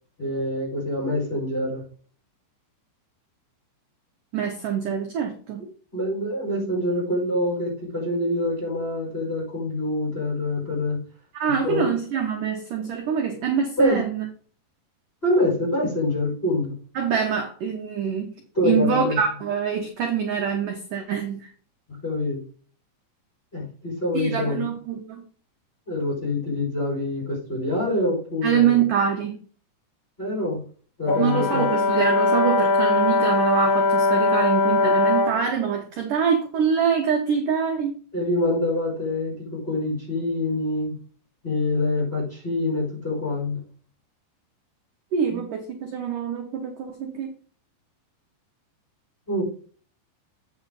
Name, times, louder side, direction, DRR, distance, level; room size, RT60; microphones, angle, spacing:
voice 1, 0.2-1.8 5.9-11.0 11.6-11.9 13.8-14.1 15.2-16.7 18.5-19.2 22.0-22.4 23.5-24.7 25.9-28.8 30.2-30.6 31.0-31.6 38.1-41.0 41.4-43.6 45.3-45.4 49.3-49.4, left 1 dB, 10° left, -6 dB, 5.2 m, -25 dB
voice 2, 4.3-5.6 11.3-14.3 17.0-18.3 18.6-21.5 24.1-25.2 28.4-29.4 31.2-38.0 45.1-47.3, right 7 dB, 70° right, 2 dB, 2.0 m, -25 dB
Brass instrument, 31.1-35.4, left 3 dB, 65° left, 1.9 m, -21 dB
8.7 x 6.7 x 4.0 m, 0.41 s
omnidirectional pair, 5.4 m